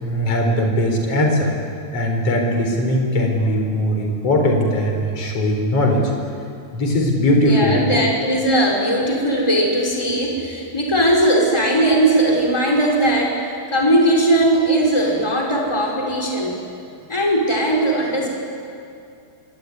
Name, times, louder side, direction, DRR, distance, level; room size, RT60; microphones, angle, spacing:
voice 1, 0.0-1.5 1.9-6.0 6.7-8.0, left 1 dB, 30° left, 2 dB, 5.1 m, -19 dB
voice 2, 7.4-16.6 17.1-18.3, right 1 dB, 5° left, -2 dB, 4.5 m, -18 dB
25.5 x 22.5 x 9.7 m, 2.4 s
omnidirectional pair, 5.7 m